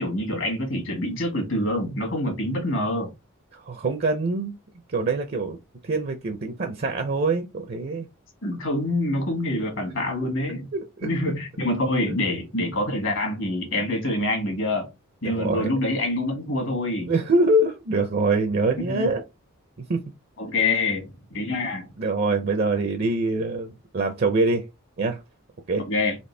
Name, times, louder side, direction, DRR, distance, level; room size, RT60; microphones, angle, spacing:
voice 1, 0.0-3.1 8.4-10.7 11.0-14.9 15.2-17.1 18.8-19.1 20.4-21.9 25.9-26.2, left 1 dB, 65° left, 1.8 m, -26 dB
voice 2, 3.5-4.5 4.9-8.1 10.7-11.1 15.2-15.7 17.1-19.2 19.9-20.0 22.0-24.6 25.0-25.2 25.7-25.8, right 2 dB, 45° right, 0.5 m, -24 dB
4.2 x 2.9 x 3.2 m
head